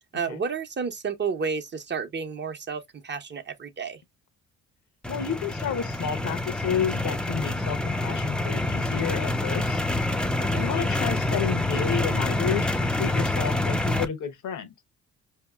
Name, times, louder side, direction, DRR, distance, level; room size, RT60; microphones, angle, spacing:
voice 1, 0.1-4.0 10.5-10.7, right 5 dB, 35° right, 0.7 m, -31 dB
sound 1, 5.0-14.1, left 2 dB, 5° left, 0.4 m, -27 dB
voice 2, 5.1-9.8 10.6-14.7, left 8 dB, 75° left, 0.9 m, -31 dB
4.6 x 2.8 x 2.3 m
cardioid pair, 90°, 30 cm